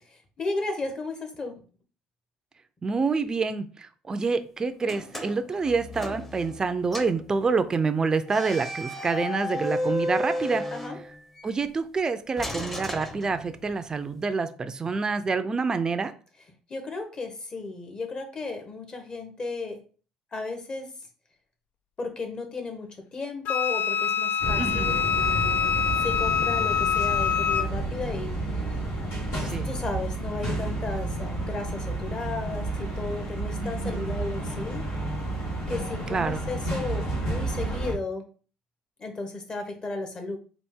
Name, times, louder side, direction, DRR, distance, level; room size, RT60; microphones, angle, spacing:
voice 1, 0.4-1.5 10.7-11.0 16.7-19.8 20.3-20.9 22.0-25.1 26.0-28.7 29.4-34.8 35.7-38.2 39.0-40.4, left 3 dB, 35° left, 5 dB, 1.2 m, -34 dB
voice 2, 2.8-10.6 11.4-16.1 24.6-25.0 29.4-29.7 33.6-34.2 36.1-36.4, right 4 dB, 25° right, 10 dB, 0.4 m, -27 dB
sound 1, 4.8-6.6 6.9-7.2 8.3-11.5 12.4-13.8, left 1 dB, 10° left, 0.8 m, -33 dB
Wind instrument woodwind instrument, 23.4-27.7, left 7 dB, 65° left, 0.4 m, -25 dB
sound 2, 24.4-38.0, right 2 dB, 80° left, 2.0 m, -31 dB
4.1 x 2.5 x 3.6 m, 0.38 s
supercardioid pair, 85°, 3 cm